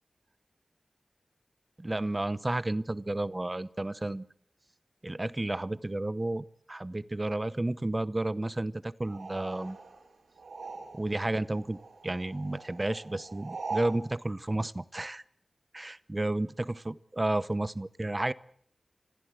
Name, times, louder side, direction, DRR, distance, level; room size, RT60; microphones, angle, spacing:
voice 1, 1.8-4.3 5.0-9.8 10.9-11.8 12.0-15.2 15.7-18.3, right 2 dB, 30° right, 17 dB, 0.8 m, -32 dB
sound 1, 9.0-11.3 11.5-14.0, right 4 dB, 90° right, 3.7 m, -42 dB
25.0 x 15.5 x 7.9 m, 0.63 s
cardioid pair, 50°, 0 cm